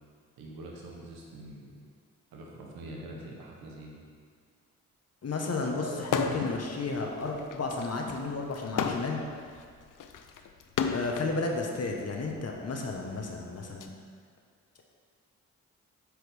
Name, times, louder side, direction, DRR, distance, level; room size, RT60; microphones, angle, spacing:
voice 1, 0.4-1.8 2.3-4.0 5.8-6.5, right 2 dB, 85° right, -1 dB, 1.1 m, -43 dB
voice 2, 5.2-9.2 10.9-13.9, left 3 dB, 45° left, 1 dB, 1.1 m, -33 dB
sound 1, 6.0-6.6 7.0-11.3 12.2-13.9, left 6 dB, 65° left, 0.6 m, -33 dB
8.0 x 4.8 x 3.5 m, 2.1 s
supercardioid pair, 45°, 35 cm